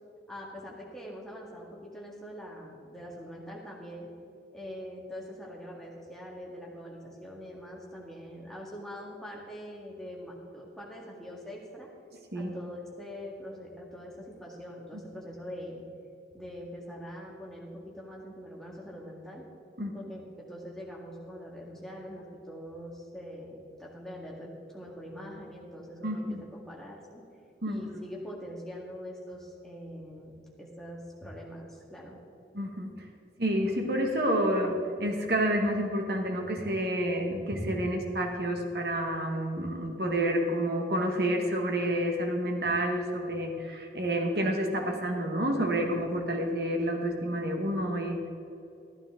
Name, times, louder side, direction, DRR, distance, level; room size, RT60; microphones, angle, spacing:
voice 1, 0.3-4.1 4.5-11.9 12.3-15.8 16.3-19.5 19.9-27.2 27.7-32.2, equal, 5° left, -3 dB, 1.9 m, -43 dB
voice 2, 26.0-26.4 27.6-27.8 32.5-32.9 33.4-48.3, right 1 dB, 60° right, 2 dB, 1.5 m, -29 dB
13.5 x 12.5 x 3.7 m, 2.6 s
head